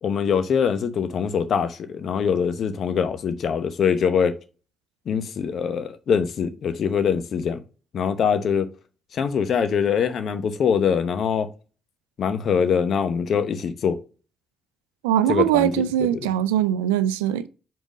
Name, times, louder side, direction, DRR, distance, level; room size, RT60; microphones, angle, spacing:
voice 1, 0.0-4.3 5.1-7.6 7.9-8.7 9.1-11.5 12.2-14.0 15.3-15.7 16.1-16.3, left 7 dB, 60° left, 0.8 m, -23 dB
voice 2, 15.0-17.5, right 11 dB, 85° right, 0.4 m, -21 dB
5.1 x 3.9 x 5.0 m
hypercardioid pair, 45°, 0 cm